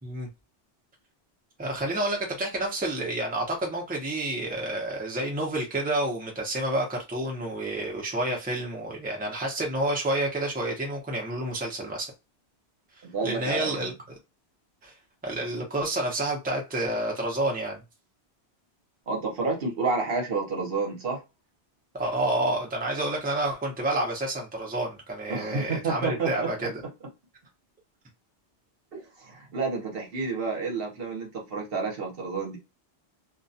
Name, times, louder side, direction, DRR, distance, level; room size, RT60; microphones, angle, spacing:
voice 1, 1.6-12.1 13.2-13.9 14.8-14.9 15.2-17.8 21.9-26.8, right 1 dB, 10° right, 0.6 m, -29 dB
voice 2, 13.0-13.9 19.1-21.2 25.3-26.7 28.9-32.6, right 4 dB, 60° right, 1.0 m, -30 dB
2.4 x 2.2 x 2.6 m
omnidirectional pair, 1.1 m